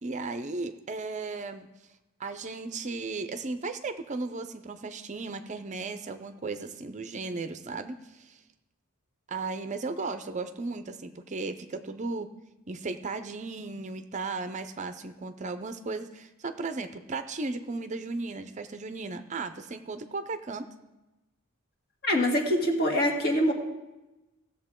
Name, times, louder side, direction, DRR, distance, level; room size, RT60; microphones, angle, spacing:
voice 1, 0.0-1.7 2.2-8.4 9.3-12.3 12.7-20.7, right 3 dB, 35° right, 9 dB, 0.5 m, -35 dB
voice 2, 22.0-23.5, equal, 45° left, 1 dB, 1.8 m, -24 dB
17.0 x 7.1 x 3.7 m, 1.0 s
head